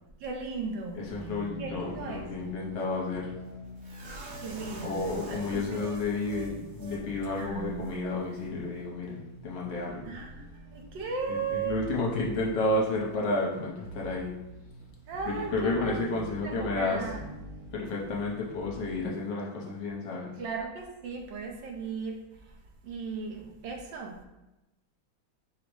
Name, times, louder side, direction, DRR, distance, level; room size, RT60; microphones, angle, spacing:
voice 1, 0.2-1.0 1.6-2.5 4.4-5.8 7.4-8.2 10.1-10.4 10.7-11.8 15.1-16.1 16.4-17.3 20.4-22.2 22.8-24.2, right 5 dB, 75° right, 1 dB, 1.3 m, -36 dB
voice 2, 0.9-3.3 4.3-4.4 4.8-10.0 11.3-14.3 15.2-17.0 17.7-20.3, left 2 dB, 70° left, -2 dB, 1.4 m, -31 dB
sound 1, 1.1-19.1, equal, 35° right, 0.4 m, -46 dB
sound 2, 3.8-7.0 7.3-7.4 7.8-7.9, right 2 dB, 50° right, 0.8 m, -44 dB
4.9 x 2.1 x 4.6 m, 0.95 s
omnidirectional pair, 2.1 m